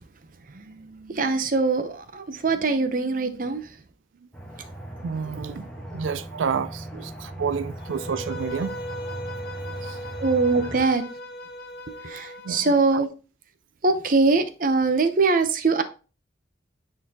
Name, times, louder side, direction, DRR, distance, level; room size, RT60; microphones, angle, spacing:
voice 1, 0.5-3.7 10.2-11.0 12.0-13.1 13.8-15.8, right 3 dB, 45° right, 0.6 m, -23 dB
Aircraft, 4.3-10.8, right 1 dB, 5° left, 1.2 m, -38 dB
voice 2, 5.0-5.7 5.9-8.8 9.8-10.0 12.4-13.0, right 6 dB, 85° right, 0.4 m, -30 dB
Bowed string instrument, 7.8-12.8, equal, 55° left, 0.7 m, -38 dB
8.8 x 3.9 x 2.8 m
head